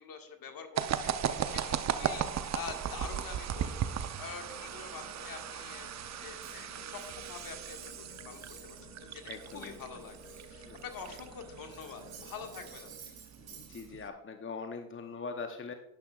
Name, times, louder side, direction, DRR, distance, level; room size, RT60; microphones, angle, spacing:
voice 1, 0.0-13.2, left 6 dB, 50° left, 4 dB, 1.8 m, -46 dB
sound 1, 0.8-14.1, right 9 dB, 35° right, 0.7 m, -37 dB
sound 2, 2.6-12.9, left 2 dB, 80° left, 3.5 m, -54 dB
Cutlery silverware, 6.4-8.9 9.2-11.3 11.6-13.9, right 7 dB, 55° right, 2.4 m, -54 dB
voice 2, 9.3-9.8 10.7-10.8 13.4-15.7, left 4 dB, 25° left, 6 dB, 0.8 m, -42 dB
10.5 x 10.5 x 2.4 m, 0.96 s
hypercardioid pair, 55°, 45 cm